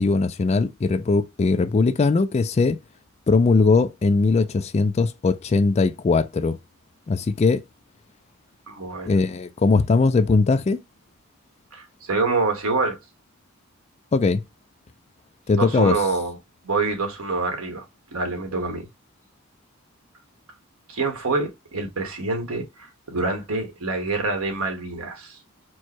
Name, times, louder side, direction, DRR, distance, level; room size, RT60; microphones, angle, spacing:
voice 1, 0.0-2.8 3.3-6.6 7.1-7.6 9.1-10.8 14.1-14.4 15.5-16.0, left 3 dB, 30° left, 0.3 m, -20 dB
voice 2, 8.7-9.1 11.7-13.0 15.5-16.4 16.6-17.8 18.1-18.9 20.9-22.6 23.1-25.4, right 3 dB, 85° right, 1.4 m, -26 dB
4.6 x 2.2 x 4.4 m
head